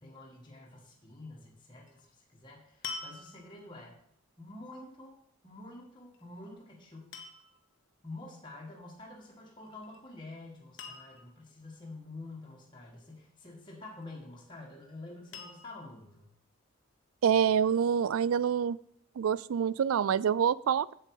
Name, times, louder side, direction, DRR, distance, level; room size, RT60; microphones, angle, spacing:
voice 1, 0.0-4.0 4.4-5.2 5.4-7.1 8.0-16.3, left 2 dB, 20° left, -3 dB, 1.8 m, -48 dB
sound 1, 1.9-2.1 2.8-3.7 6.1-6.5 7.1-7.7 9.6-10.0 10.3-10.4 10.8-11.5 13.8-14.4 15.3-16.0 16.7-16.8, left 4 dB, 55° left, 1.2 m, -45 dB
voice 2, 17.2-18.8 19.2-20.9, right 8 dB, 75° right, 20 dB, 0.3 m, -26 dB
7.8 x 7.6 x 4.9 m, 0.67 s
head